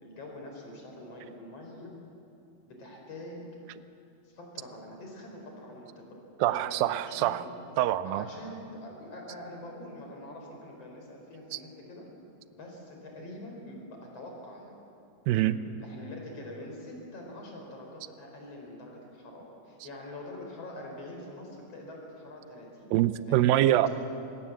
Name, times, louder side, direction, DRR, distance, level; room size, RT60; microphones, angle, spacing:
voice 1, 0.0-1.9 2.7-3.4 4.2-7.5 8.0-12.1 12.5-14.8 15.4-22.9 23.3-23.5, left 1 dB, 40° left, 1 dB, 5.4 m, -45 dB
voice 2, 6.4-7.5 7.8-8.3 11.5-11.6 15.3-15.6 22.9-23.9, right 13 dB, 80° right, 13 dB, 2.3 m, -24 dB
25.0 x 21.5 x 7.5 m, 2.8 s
omnidirectional pair, 4.5 m